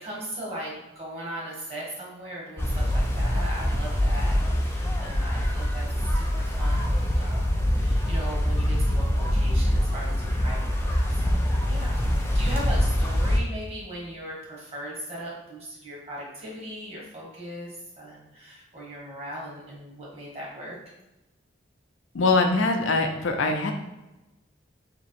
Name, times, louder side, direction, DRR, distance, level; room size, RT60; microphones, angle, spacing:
voice 1, 0.0-20.8, right 1 dB, 30° right, -4 dB, 1.4 m, -39 dB
sound 1, 2.6-13.4, equal, 10° left, 0.4 m, -24 dB
voice 2, 22.1-23.7, left 3 dB, 75° left, 4 dB, 0.6 m, -22 dB
3.4 x 3.0 x 4.3 m, 1.0 s
head